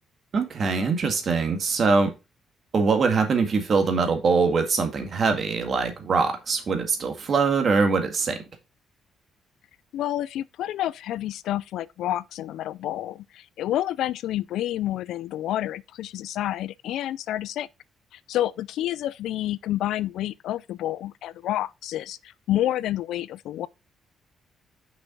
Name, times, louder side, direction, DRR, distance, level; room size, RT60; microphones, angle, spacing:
voice 1, 0.3-2.1 2.7-8.4, right 4 dB, 50° right, 1.9 m, -23 dB
voice 2, 9.9-17.7 18.1-23.7, left 13 dB, 80° left, 0.3 m, -29 dB
6.2 x 5.6 x 3.8 m
cardioid pair, 90°, 0 cm